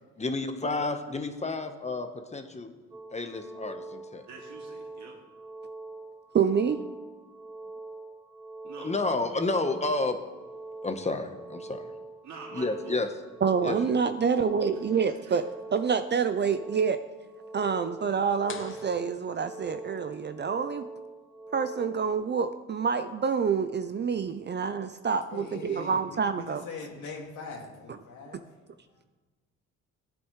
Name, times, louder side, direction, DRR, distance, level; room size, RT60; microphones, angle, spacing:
voice 1, 0.2-2.7 3.1-4.3 8.8-10.2 10.8-11.9 12.5-13.1 13.6-14.0, left 3 dB, 20° left, 7 dB, 1.1 m, -30 dB
sound 1, 2.9-22.1, right 3 dB, 15° right, 3.1 m, -44 dB
voice 2, 4.3-5.2 8.7-8.9 12.2-13.0 15.3-15.4, right 4 dB, 65° right, -2 dB, 2.5 m, -45 dB
voice 3, 6.3-6.8 13.4-15.4 15.7-17.0 17.5-20.8 21.5-26.6, right 6 dB, 35° right, 9 dB, 0.5 m, -27 dB
sound 2, 18.5-20.2, left 6 dB, 45° left, 0.9 m, -46 dB
voice 4, 25.3-28.4, left 4 dB, 75° left, -2 dB, 2.3 m, -42 dB
17.0 x 8.6 x 3.2 m, 1.2 s
cardioid pair, 90°, 30 cm